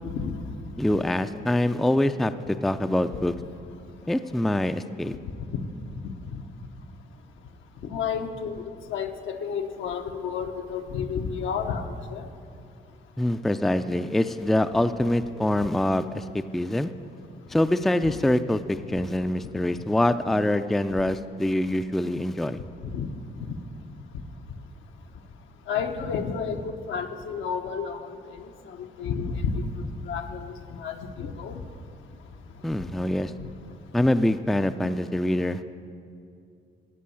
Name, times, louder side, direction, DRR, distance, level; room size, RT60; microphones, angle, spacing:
voice 1, 0.0-0.3 0.9-1.0 5.5-5.7 6.0-6.4 7.9-11.8 12.1-12.3 18.0-18.2 22.8-23.1 25.7-26.6 26.9-28.1 29.0-29.6 30.1-30.5 30.8-31.6, left 6 dB, 75° left, 5 dB, 1.0 m, -31 dB
voice 2, 0.8-3.3 4.1-5.2 13.2-16.3 16.5-16.9 17.5-22.6 32.6-33.3 33.9-35.6, left 1 dB, ahead, 10 dB, 0.4 m, -24 dB
16.0 x 5.4 x 8.4 m, 2.4 s
cardioid pair, 90°, 20 cm